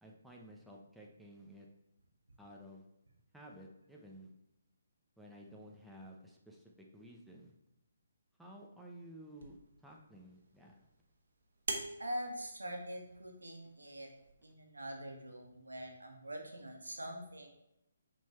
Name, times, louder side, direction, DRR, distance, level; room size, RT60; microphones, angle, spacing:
voice 1, 0.0-1.7 2.4-2.9 3.3-4.3 5.2-7.5 8.4-10.8, equal, ahead, -2 dB, 0.8 m, -54 dB
sound 1, 9.3-14.3, right 3 dB, 65° right, 1.3 m, -47 dB
voice 2, 12.0-14.1 14.4-17.5, equal, 90° right, 2 dB, 1.5 m, -44 dB
7.3 x 3.8 x 4.4 m, 0.85 s
figure-of-eight pair, 145°, 0 cm